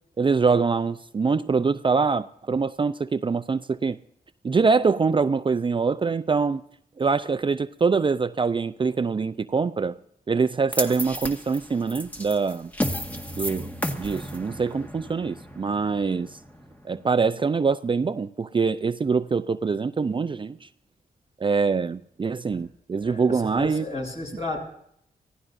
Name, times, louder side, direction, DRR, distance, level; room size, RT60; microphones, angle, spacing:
voice 1, 0.2-4.0 4.4-6.6 7.0-10.0 10.3-12.7 13.4-13.7 14.0-16.4 16.8-20.7 21.4-23.9, right 5 dB, 30° right, 0.5 m, -24 dB
sound 1, 10.7-17.0, equal, 10° left, 1.6 m, -33 dB
voice 2, 23.0-24.6, left 2 dB, 45° left, 7.0 m, -33 dB
25.5 x 16.0 x 2.6 m
cardioid pair, 80°, 16 cm